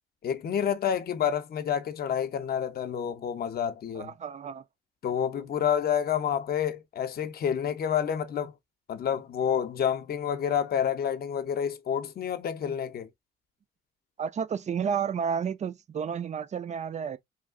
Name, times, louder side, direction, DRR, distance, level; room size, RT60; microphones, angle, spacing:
voice 1, 0.2-4.1 5.0-8.5 8.9-13.1, left 8 dB, 50° left, 0.7 m, -29 dB
voice 2, 3.9-4.6 14.2-17.2, right 7 dB, 35° right, 0.4 m, -31 dB
3.2 x 2.4 x 3.6 m
cardioid pair, 90°, 20 cm